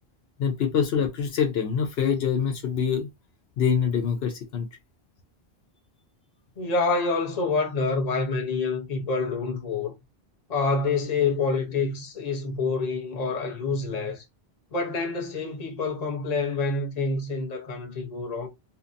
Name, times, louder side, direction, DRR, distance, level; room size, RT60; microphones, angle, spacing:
voice 1, 0.4-3.1 3.6-4.7, left 7 dB, 75° left, 0.8 m, -25 dB
voice 2, 6.6-9.9 10.5-14.2 14.7-18.5, left 4 dB, 45° left, 0.8 m, -27 dB
2.7 x 2.1 x 2.5 m
omnidirectional pair, 1.0 m